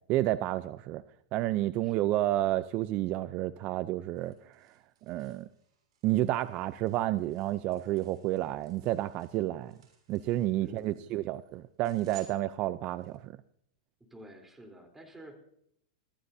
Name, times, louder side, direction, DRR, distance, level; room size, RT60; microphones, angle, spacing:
voice 1, 0.1-1.0 1.3-4.7 5.1-5.5 6.0-9.8 10.1-13.3, right 15 dB, 40° right, 14 dB, 0.6 m, -30 dB
voice 2, 1.8-2.3 10.6-11.2 14.1-15.4, right 1 dB, 10° right, 4 dB, 3.8 m, -51 dB
sound 1, 3.6-13.2, right 10 dB, 80° right, 7.0 m, -60 dB
24.5 x 14.5 x 2.8 m, 0.70 s
hypercardioid pair, 125°, 3 cm